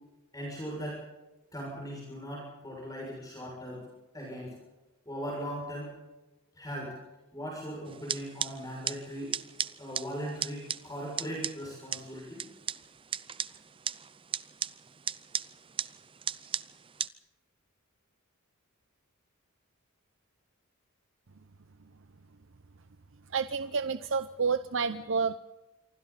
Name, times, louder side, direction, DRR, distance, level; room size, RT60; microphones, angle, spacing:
voice 1, 0.3-1.0 1.5-3.9 4.1-4.5 5.0-5.9 6.5-7.0 7.3-9.3 9.8-12.5, equal, 15° left, -3 dB, 6.7 m, -39 dB
sound 1, 7.9-17.1, right 8 dB, 25° right, 0.6 m, -37 dB
voice 2, 23.3-25.4, right 5 dB, 60° right, 11 dB, 0.7 m, -29 dB
27.5 x 24.5 x 4.2 m, 1.1 s
head